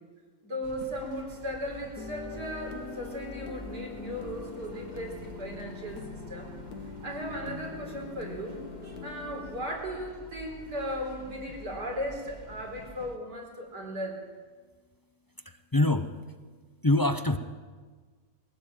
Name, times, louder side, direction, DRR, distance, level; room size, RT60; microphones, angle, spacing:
voice 1, 0.4-6.5 7.0-8.6 9.0-14.2, equal, 80° right, 1 dB, 5.3 m, -37 dB
sound 1, 0.6-13.2, equal, 25° right, 1.7 m, -48 dB
sound 2, 2.0-9.8, left 5 dB, 60° left, 1.7 m, -43 dB
voice 2, 15.4-16.1 16.8-17.4, left 2 dB, 20° left, 8 dB, 0.6 m, -24 dB
21.5 x 17.0 x 9.0 m, 1.4 s
omnidirectional pair, 1.8 m